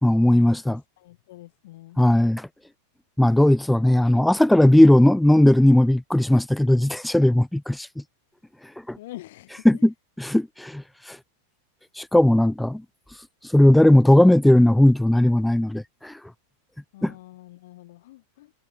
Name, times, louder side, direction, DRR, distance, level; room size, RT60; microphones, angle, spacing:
voice 1, 0.0-0.8 2.0-2.5 3.2-7.9 8.9-9.0 9.7-9.9 10.2-11.2 12.0-12.8 13.5-16.1 17.0-17.1, left 1 dB, 5° left, 0.5 m, -17 dB
voice 2, 1.0-2.0 9.0-9.8 16.9-18.5, left 17 dB, 55° left, 3.5 m, -45 dB
figure-of-eight pair, 90°, 0 cm